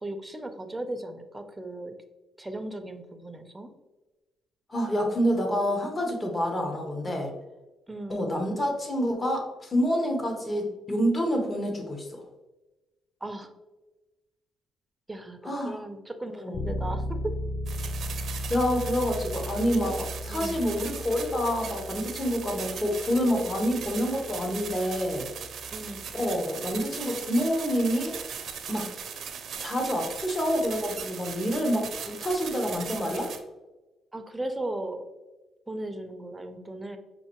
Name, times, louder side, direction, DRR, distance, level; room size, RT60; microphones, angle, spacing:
voice 1, 0.0-1.9 2.4-3.7 7.9-8.3 13.2-13.5 15.1-17.4 19.8-20.0 20.3-20.6 25.7-26.1 34.1-35.0 35.7-37.0, right 1 dB, 10° right, 7 dB, 0.5 m, -36 dB
voice 2, 4.7-7.3 8.1-12.2 15.4-15.8 16.4-16.7 18.5-25.3 26.1-28.2 28.7-28.9 29.6-33.3, equal, 30° left, 3 dB, 0.9 m, -27 dB
Bass guitar, 16.5-26.2, left 1 dB, 50° left, 0.4 m, -37 dB
sound 1, 17.7-33.4, right 7 dB, 65° right, 0.5 m, -39 dB
5.5 x 2.6 x 2.9 m, 1.1 s
cardioid pair, 90°, 0 cm